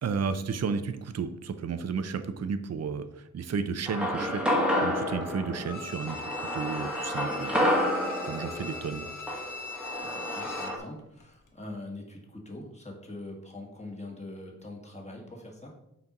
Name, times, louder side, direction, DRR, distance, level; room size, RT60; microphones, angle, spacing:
voice 1, 0.0-7.7 8.2-9.1, right 5 dB, 45° right, 10 dB, 0.6 m, -33 dB
sound 1, 3.9-10.8, left 1 dB, 5° right, 1.2 m, -30 dB
Bowed string instrument, 5.6-10.9 11.2-11.3, left 3 dB, 60° left, 1.2 m, -39 dB
voice 2, 10.0-15.7, left 2 dB, 20° left, -1 dB, 1.6 m, -43 dB
6.0 x 4.4 x 5.3 m, 0.82 s
wide cardioid pair, 145°, 35 cm